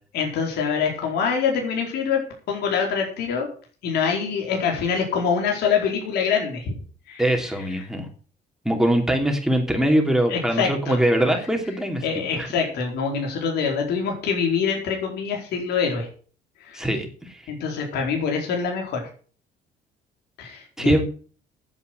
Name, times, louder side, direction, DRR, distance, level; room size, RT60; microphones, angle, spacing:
voice 1, 0.1-2.2 2.5-3.5 3.8-6.7 7.1-7.3 10.3-11.0 12.0-16.1 16.6-16.9 17.5-19.0 20.4-21.0, left 6 dB, 75° left, 1 dB, 4.5 m, -25 dB
voice 2, 7.2-8.1 8.6-12.0 12.4-12.5 16.7-17.4 20.8-21.0, right 1 dB, 5° right, 3 dB, 3.0 m, -22 dB
9.8 x 8.3 x 8.1 m, 0.41 s
cardioid pair, 110°, 17 cm